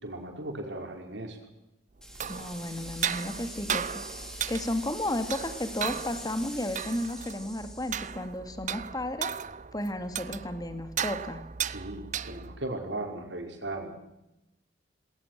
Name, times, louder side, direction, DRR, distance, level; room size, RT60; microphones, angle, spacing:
voice 1, 0.0-1.4 11.7-13.9, right 2 dB, 85° right, 3 dB, 5.3 m, -37 dB
sound 1, 2.0-8.1, equal, 5° left, 4.9 m, -44 dB
sound 2, 2.0-12.7, right 8 dB, 45° right, 0.7 m, -36 dB
voice 2, 2.3-4.0 4.5-9.3 9.7-11.4, left 1 dB, 20° left, 9 dB, 2.4 m, -33 dB
20.5 x 19.0 x 7.6 m, 0.88 s
head